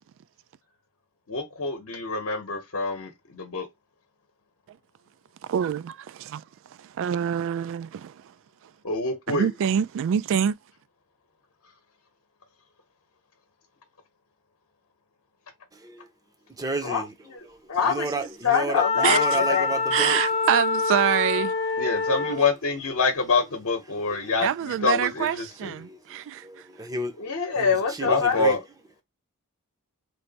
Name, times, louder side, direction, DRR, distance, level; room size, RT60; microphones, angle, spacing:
voice 1, 1.3-3.7 8.8-9.5 16.8-17.4 17.7-19.7 21.8-25.7 27.2-28.6, left 4 dB, 60° left, 0.9 m, -26 dB
voice 2, 5.5-6.4 6.8-8.2 9.3-10.5 19.0-19.2 19.9-21.5 22.3-22.4 24.4-26.4, right 9 dB, 60° right, 0.3 m, -25 dB
voice 3, 16.6-17.1 17.8-20.2 25.8-26.0 26.4-27.1 27.6-28.6, right 2 dB, 15° right, 0.6 m, -31 dB
Wind instrument woodwind instrument, 18.7-22.5, left 4 dB, 25° left, 0.5 m, -25 dB
3.3 x 2.6 x 3.9 m
head